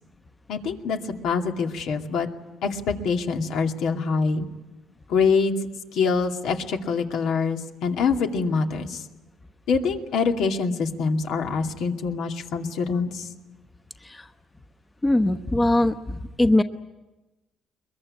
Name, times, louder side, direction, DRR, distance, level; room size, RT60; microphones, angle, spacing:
voice 1, 0.5-1.0 1.2-2.3 2.6-4.5 5.1-5.6 5.9-9.0 9.7-13.3, left 5 dB, 75° left, 3 dB, 2.4 m, -25 dB
voice 2, 15.0-16.6, left 1 dB, 15° left, 8 dB, 1.0 m, -21 dB
22.5 x 22.0 x 9.9 m, 1.1 s
cardioid pair, 110°, 0 cm